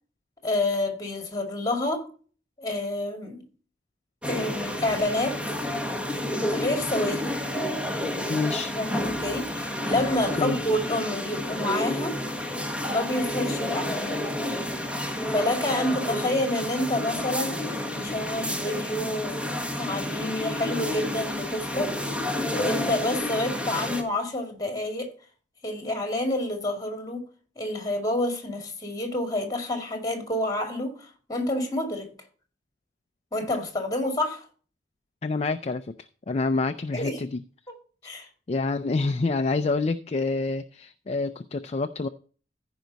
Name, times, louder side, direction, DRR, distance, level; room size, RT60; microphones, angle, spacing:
voice 1, 0.4-2.1 2.6-3.4 4.3-5.5 6.5-7.4 8.8-12.2 12.9-14.4 15.3-17.6 17.9-19.4 19.8-22.0 22.5-25.1 25.6-27.3 27.6-32.1 33.3-34.4 36.9-37.2 38.0-38.3, left 1 dB, 20° left, 2.1 m, -28 dB
sound 1, 4.2-24.0, left 1 dB, 5° right, 1.4 m, -30 dB
voice 2, 8.3-8.7 10.4-10.6 35.2-35.9 36.3-37.4 38.5-42.1, left 3 dB, 35° left, 0.4 m, -27 dB
15.0 x 5.2 x 4.0 m
head